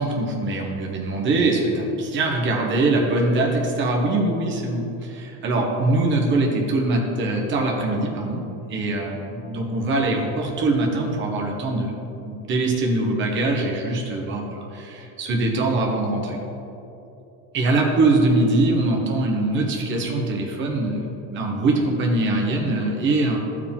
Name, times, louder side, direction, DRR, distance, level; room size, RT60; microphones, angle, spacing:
voice 1, 0.0-12.0 12.2-16.4 17.5-23.4, right 2 dB, 30° right, 0 dB, 1.2 m, -23 dB
14.0 x 4.9 x 3.6 m, 2.9 s
cardioid pair, 155°, 41 cm